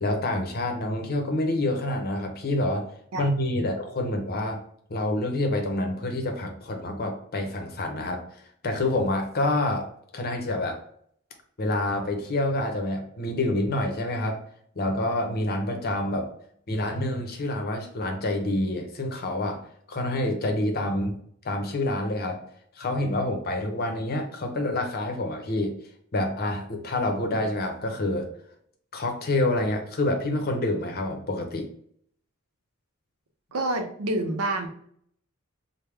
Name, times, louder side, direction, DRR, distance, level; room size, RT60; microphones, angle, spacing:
voice 1, 0.0-2.9 3.2-4.6 4.9-8.2 8.6-9.9 10.1-10.8 11.6-14.4 14.8-16.3 16.7-19.6 19.9-21.2 21.4-22.4 22.8-25.7 26.1-28.3 28.9-31.7, left 1 dB, 45° left, 4 dB, 0.6 m, -27 dB
voice 2, 33.5-34.7, right 2 dB, 85° right, 5 dB, 0.6 m, -27 dB
3.3 x 2.1 x 3.2 m, 0.66 s
head